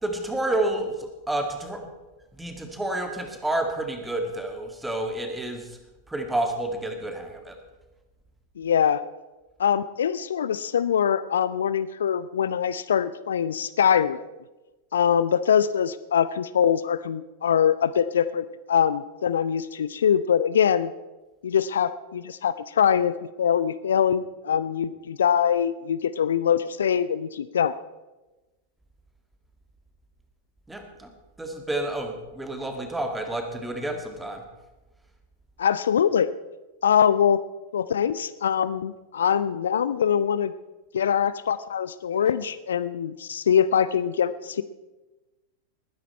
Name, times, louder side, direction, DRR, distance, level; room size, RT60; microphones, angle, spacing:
voice 1, 0.0-1.9 2.3-5.8 6.1-7.6 30.7-31.1 31.4-34.4, right 1 dB, 5° right, 5 dB, 2.0 m, -29 dB
voice 2, 8.6-9.0 9.6-14.2 14.9-20.9 21.4-27.8 35.6-36.3 36.8-37.4 37.7-40.5 40.9-44.6, left 8 dB, 65° left, 15 dB, 0.4 m, -23 dB
20.0 x 9.9 x 4.3 m, 1.1 s
figure-of-eight pair, 90°, 0 cm